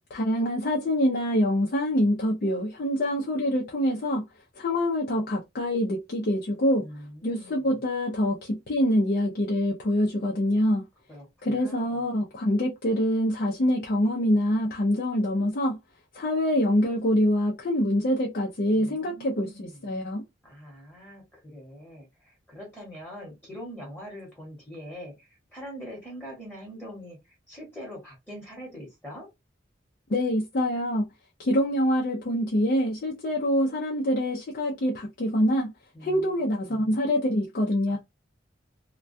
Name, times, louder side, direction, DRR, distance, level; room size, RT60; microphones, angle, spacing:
voice 1, 0.1-4.3 4.6-6.8 7.2-10.8 11.4-15.8 16.1-20.2 30.1-31.1 31.4-35.7 36.0-38.0, equal, 50° left, 0.5 m, -25 dB
voice 2, 6.8-7.8 11.1-12.0 18.7-19.8 20.4-27.2 27.5-29.3 35.9-36.9 37.9-38.0, equal, 10° left, 1.0 m, -43 dB
2.2 x 2.2 x 2.5 m
head